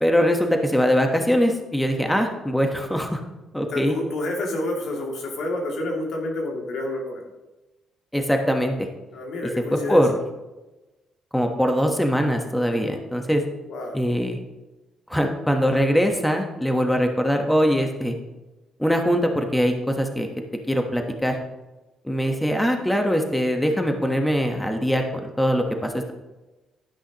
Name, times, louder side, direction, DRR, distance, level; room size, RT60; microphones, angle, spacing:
voice 1, 0.0-3.2 3.5-3.9 8.1-8.7 9.9-10.1 11.3-13.4 13.9-14.4 15.1-18.1 18.8-20.3 20.7-21.4 22.0-26.1, equal, 5° left, 4 dB, 1.2 m, -22 dB
voice 2, 3.7-7.2 9.1-10.0 13.7-14.0, left 2 dB, 75° left, 0 dB, 2.5 m, -29 dB
11.5 x 9.6 x 3.0 m, 1.1 s
cardioid pair, 90°, 0 cm